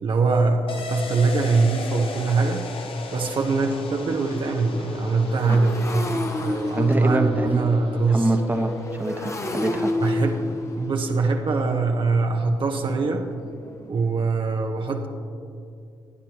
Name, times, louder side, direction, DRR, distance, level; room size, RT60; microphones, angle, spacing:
voice 1, 0.0-2.6 3.1-8.4 10.0-10.4 10.8-13.3 13.9-15.1, right 3 dB, 50° right, 2 dB, 0.9 m, -23 dB
sound 1, 0.7-10.1 10.4-10.5, left 4 dB, 55° left, 1.1 m, -39 dB
Motorcycle, 1.7-1.8 2.3-2.4 2.7-14.3, left 2 dB, 25° left, 1.1 m, -32 dB
voice 2, 6.7-7.6 8.1-8.7 9.0-9.9, right 2 dB, 15° right, 5 dB, 1.2 m, -25 dB
18.0 x 9.0 x 2.9 m, 2.5 s
hypercardioid pair, 45°, 11 cm